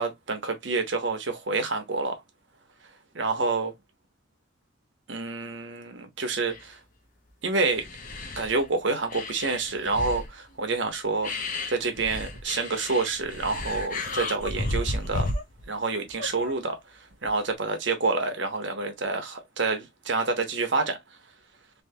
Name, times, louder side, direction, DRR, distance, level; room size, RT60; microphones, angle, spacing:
voice 1, 0.0-2.2 3.2-3.7 5.1-6.8 7.4-7.8 8.4-15.3 15.7-21.0, right 3 dB, 65° right, 1.0 m, -28 dB
sound 1, 6.5-6.6 7.3-7.4 7.6-8.7 9.1-10.3 10.9-11.0 11.2-15.6 16.1-16.5 17.2-17.5, left 2 dB, 40° left, 0.8 m, -33 dB
3.5 x 2.9 x 2.7 m
head